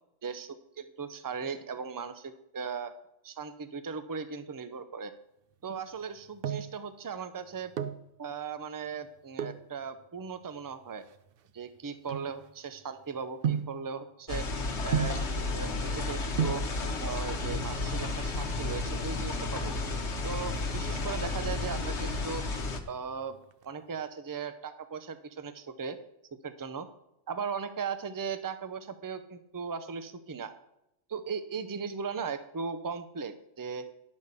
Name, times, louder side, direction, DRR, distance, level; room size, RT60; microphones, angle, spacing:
voice 1, 0.2-2.9 3.2-5.1 5.6-7.7 8.2-11.0 11.5-14.5 14.8-16.6 17.0-19.7 20.2-22.4 22.9-23.4 23.6-26.0 26.4-26.9 27.3-30.5 31.1-33.9, right 6 dB, 25° right, 11 dB, 0.4 m, -38 dB
sound 1, 6.0-6.8 7.6-8.1 9.3-9.7 10.4-12.8 13.4-13.8 14.9-15.3 16.1-16.2 16.4-16.7 17.9-18.4 18.7-18.8 19.0-19.2 19.5-19.9 20.2-21.3 21.7-22.1 22.5-23.7 23.9-24.0, right 8 dB, 60° right, 0.7 m, -34 dB
sound 2, 14.3-22.8, left 3 dB, 70° left, 1.3 m, -32 dB
11.5 x 5.3 x 6.7 m, 0.84 s
omnidirectional pair, 1.2 m